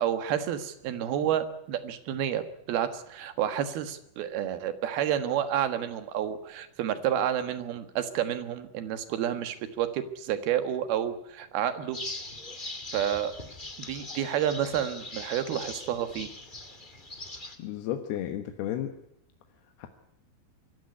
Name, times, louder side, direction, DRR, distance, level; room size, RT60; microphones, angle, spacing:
voice 1, 0.0-2.4 2.7-12.0 12.9-13.3 13.9-16.3, right 10 dB, 65° right, 10 dB, 3.0 m, -30 dB
sound 1, 11.9-17.5, left 2 dB, 30° left, 0.8 m, -41 dB
voice 2, 17.6-18.9 19.8-19.9, left 11 dB, 65° left, 6 dB, 2.9 m, -33 dB
25.0 x 14.5 x 9.7 m, 0.79 s
omnidirectional pair, 5.5 m